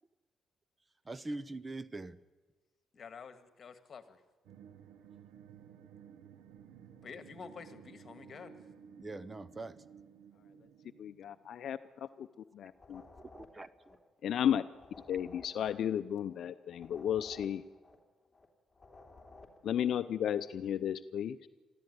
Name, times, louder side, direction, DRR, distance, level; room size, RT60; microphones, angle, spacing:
voice 1, 1.1-2.2 9.0-9.8 13.3-14.0, right 2 dB, 25° right, 17 dB, 0.8 m, -43 dB
voice 2, 2.9-4.2 7.0-8.6, left 5 dB, 45° left, 10 dB, 1.9 m, -49 dB
sound 1, 4.4-12.0, right 8 dB, 90° right, 1.0 m, -55 dB
voice 3, 11.0-11.8 12.2-12.3 12.9-13.0 14.2-14.6 15.1-17.6 19.6-21.4, left 9 dB, 65° left, 12 dB, 0.6 m, -33 dB
sound 2, 12.7-14.5 14.7-18.5 18.7-20.1, left 3 dB, 20° left, 3.4 m, -57 dB
22.5 x 14.0 x 9.6 m, 1.2 s
cardioid pair, 90°, 0 cm